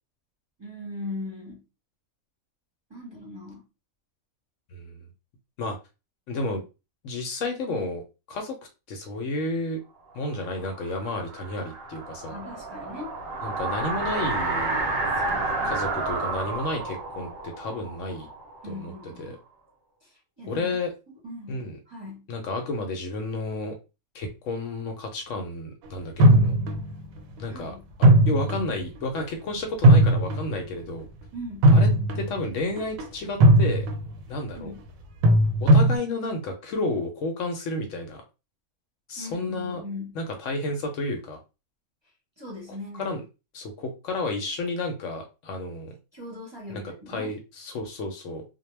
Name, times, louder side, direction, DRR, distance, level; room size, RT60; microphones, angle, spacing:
voice 1, 0.6-1.6 2.9-3.6 12.3-13.1 15.2-15.8 18.6-19.3 20.0-20.1 20.4-20.7 21.2-22.3 27.5-27.9 31.3-31.7 34.5-34.8 39.2-40.2 42.4-43.1 46.1-47.4, left 2 dB, 25° right, 0.8 m, -39 dB
voice 2, 6.3-6.6 7.0-8.6 8.9-9.8 10.1-12.4 13.4-14.9 15.6-17.3 17.6-18.3 18.6-18.9 19.2-19.4 20.5-20.9 21.5-21.8 22.3-23.8 24.1-26.6 27.4-31.1 31.7-31.9 32.1-33.9 34.3-34.7 35.6-38.2 39.1-39.8 40.2-41.4 42.7-43.2 43.5-45.9 46.7-48.4, left 2 dB, 70° left, 0.9 m, -31 dB
sound 1, 10.3-19.1, right 3 dB, 55° right, 0.7 m, -30 dB
sound 2, 26.2-27.0 28.0-28.8 29.2-29.3 29.8-30.5 31.6-32.4 32.8-33.0 33.4-34.1 35.2-36.0, right 1 dB, 80° right, 1.0 m, -17 dB
2.2 x 2.1 x 3.0 m
omnidirectional pair, 1.5 m